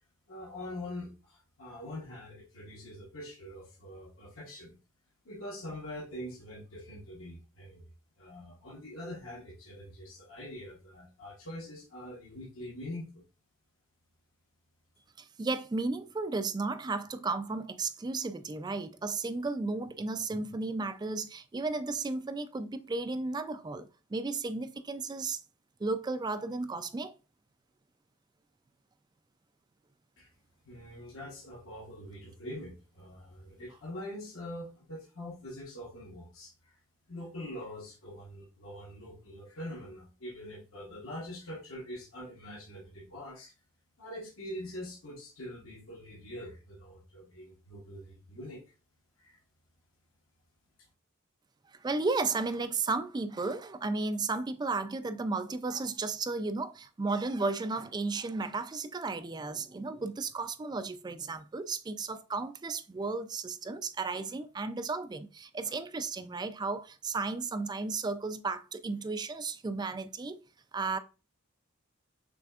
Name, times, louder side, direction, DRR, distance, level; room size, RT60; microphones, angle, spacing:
voice 1, 0.3-4.8 5.2-7.9 8.2-13.2 30.2-30.3 30.6-36.7 37.1-43.5 44.0-48.6 49.2-49.4, left 1 dB, 85° left, 1.1 m, -44 dB
voice 2, 15.2-25.4 25.8-27.2 51.8-70.4 70.7-71.0, right 3 dB, 20° right, 0.3 m, -34 dB
6.1 x 3.3 x 2.4 m
head